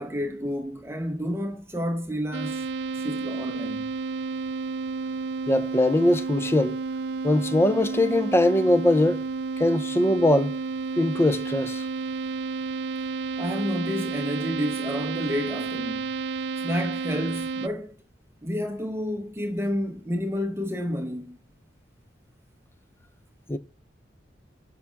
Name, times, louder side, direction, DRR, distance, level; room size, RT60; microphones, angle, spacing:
voice 1, 0.0-2.7 2.9-3.9 13.4-16.1 16.6-18.0 18.4-21.4, equal, 15° right, 0.9 m, -30 dB
sound 1, 2.3-17.7, right 4 dB, 65° right, 0.5 m, -31 dB
voice 2, 5.5-6.8 7.2-9.2 9.6-10.6 11.0-11.8 23.5-23.6, left 1 dB, 15° left, 0.6 m, -21 dB
8.6 x 5.9 x 5.8 m
head